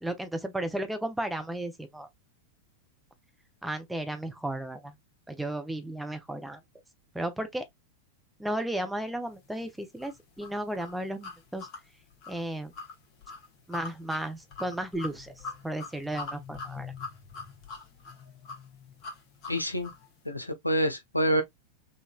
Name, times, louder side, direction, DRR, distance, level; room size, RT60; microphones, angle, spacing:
voice 1, 0.0-2.1 3.6-4.9 5.3-6.6 7.1-7.6 8.4-11.7 12.3-12.7 13.7-15.3 15.6-16.9, right 1 dB, 5° right, 0.7 m, -34 dB
sound 1, 10.0-20.1, left 4 dB, 40° left, 1.2 m, -43 dB
voice 2, 19.5-19.9 20.3-21.4, equal, 85° left, 0.6 m, -27 dB
3.8 x 2.5 x 2.3 m
figure-of-eight pair, 90°, 0 cm